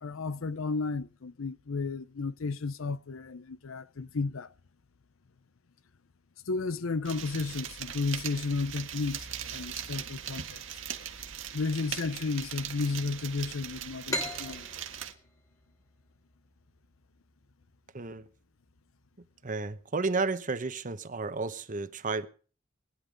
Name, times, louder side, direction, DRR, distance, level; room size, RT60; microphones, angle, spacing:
voice 1, 0.0-4.5 6.5-10.8 11.5-14.7, left 4 dB, 90° left, 0.7 m, -33 dB
sound 1, 7.0-15.1, right 9 dB, 70° right, 1.7 m, -40 dB
sound 2, 14.1-17.5, left 1 dB, 15° left, 1.9 m, -38 dB
voice 2, 17.9-18.3 19.4-22.3, right 3 dB, 40° right, 1.0 m, -32 dB
20.0 x 10.5 x 5.2 m
head